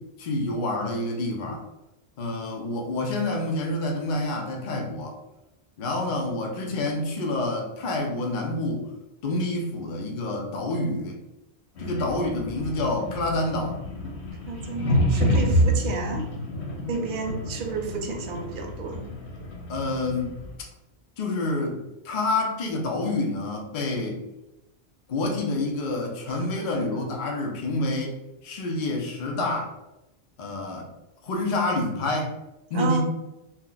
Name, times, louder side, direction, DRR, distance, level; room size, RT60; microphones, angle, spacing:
voice 1, 0.2-1.6 2.2-5.2 5.8-8.9 9.2-11.2 11.8-13.8 19.7-20.4 21.2-21.8 22.0-24.2 25.1-28.2 28.4-29.7 30.4-30.9 31.2-32.3 32.7-33.0, left 2 dB, 55° left, 0 dB, 0.6 m, -28 dB
sound 1, 11.8-20.5, equal, 85° left, 1.0 m, -28 dB
voice 2, 14.5-16.3 16.9-19.0 26.3-26.6 32.7-33.0, right 4 dB, 60° right, 3 dB, 0.6 m, -31 dB
2.8 x 2.1 x 3.8 m, 0.95 s
omnidirectional pair, 1.1 m